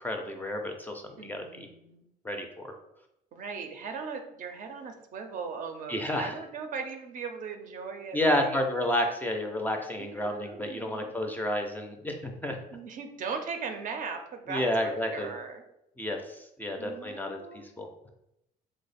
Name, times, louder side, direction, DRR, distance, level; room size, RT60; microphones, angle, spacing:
voice 1, 0.0-1.7 2.2-2.7 5.9-6.3 8.1-12.6 14.5-15.3 16.0-18.1, left 1 dB, 10° left, 3 dB, 0.4 m, -31 dB
voice 2, 1.2-2.0 3.3-8.6 10.0-11.1 12.7-15.6 16.8-17.7, right 5 dB, 50° right, 5 dB, 0.5 m, -39 dB
3.0 x 2.1 x 4.0 m, 0.84 s
cardioid pair, 110°, 17 cm